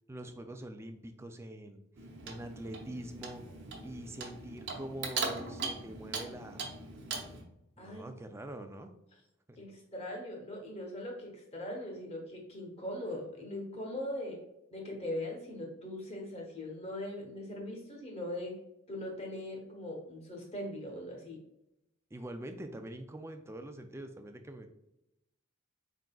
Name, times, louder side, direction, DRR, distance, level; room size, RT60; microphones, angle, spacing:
voice 1, 0.1-1.8 2.3-3.4 3.8-6.6 7.8-8.9 9.5-9.6 22.1-24.7, right 1 dB, 10° right, 6 dB, 0.3 m, -44 dB
Clock, 1.9-7.4, right 4 dB, 55° right, 0.8 m, -40 dB
voice 2, 7.8-8.1 9.6-14.4 14.7-18.5 18.9-21.4, left 1 dB, 30° left, 0 dB, 1.1 m, -40 dB
4.5 x 3.8 x 2.3 m, 0.86 s
head